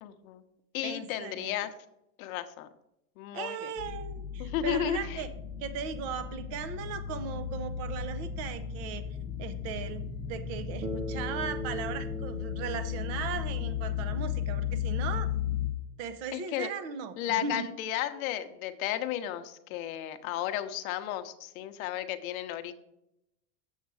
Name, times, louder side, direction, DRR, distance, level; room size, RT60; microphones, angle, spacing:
voice 1, 0.0-0.4 0.7-1.7 2.2-2.7 3.2-3.7 4.4-5.2 16.3-16.7 17.2-22.7, left 11 dB, 55° left, 9 dB, 0.9 m, -33 dB
voice 2, 0.8-1.5 3.3-5.3 5.6-9.0 9.4-15.3 16.0-17.6, right 6 dB, 30° right, 11 dB, 0.7 m, -37 dB
sound 1, 3.8-15.7, left 9 dB, 5° left, 0.3 m, -35 dB
Bass guitar, 10.8-15.2, right 1 dB, 85° right, 1.7 m, -41 dB
7.4 x 7.2 x 4.7 m, 0.83 s
supercardioid pair, 165°, 49 cm